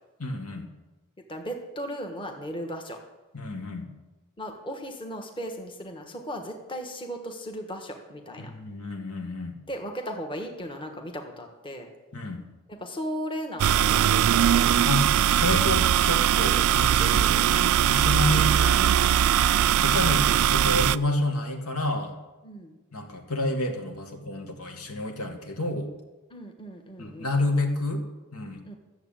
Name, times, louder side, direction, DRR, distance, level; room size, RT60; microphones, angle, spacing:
voice 1, 0.2-0.7 3.3-3.9 8.4-9.6 12.1-12.4 14.8-19.2 19.8-22.1 22.9-25.9 27.0-28.0 28.3-28.6, left 1 dB, 80° left, 2 dB, 2.0 m, -29 dB
voice 2, 1.3-3.0 4.4-8.5 9.7-11.9 12.7-14.1 22.4-22.8 26.3-27.3 28.6-28.8, equal, 25° left, 3 dB, 1.3 m, -36 dB
sound 1, 13.6-21.0, right 10 dB, 75° right, 0.4 m, -21 dB
13.5 x 7.3 x 8.8 m, 1.1 s
head